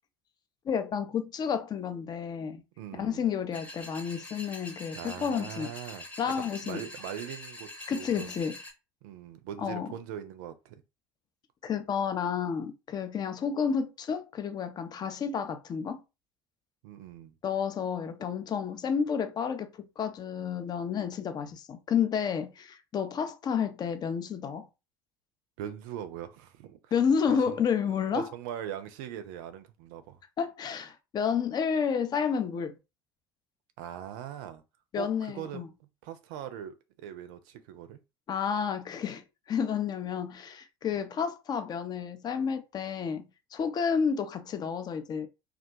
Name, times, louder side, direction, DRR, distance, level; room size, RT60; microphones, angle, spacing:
voice 1, 0.6-2.6 2.9-5.7 6.2-6.8 7.9-8.6 9.6-9.9 11.6-16.0 17.4-24.7 26.9-28.3 30.4-32.8 34.9-35.7 38.3-45.3, left 7 dB, 35° left, 0.4 m, -30 dB
voice 2, 2.8-3.3 4.9-6.0 6.4-8.5 9.0-10.8 16.8-17.4 25.6-26.9 27.3-27.6 28.1-30.2 33.8-34.6 35.0-35.1 35.3-35.6 36.0-38.0 40.8-41.0, right 10 dB, 65° right, 0.4 m, -41 dB
sound 1, 3.5-8.7, left 2 dB, 10° left, 0.9 m, -44 dB
2.3 x 2.2 x 2.7 m
figure-of-eight pair, 60°, 12 cm